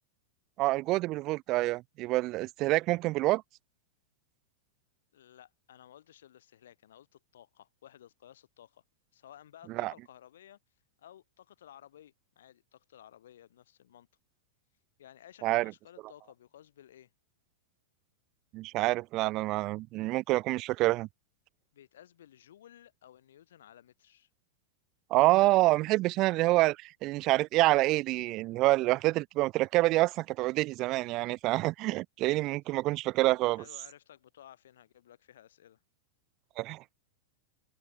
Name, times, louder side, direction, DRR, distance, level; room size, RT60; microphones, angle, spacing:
voice 1, 0.6-3.4 9.8-9.9 15.4-15.7 18.5-21.1 25.1-33.6 36.6-36.9, right 19 dB, 25° right, 0.4 m, -27 dB
voice 2, 5.1-8.8 9.1-10.6 11.0-14.1 15.0-17.1 21.7-24.3 33.5-35.8, left 11 dB, 80° left, 3.4 m, -55 dB
supercardioid pair, 175°, 0 cm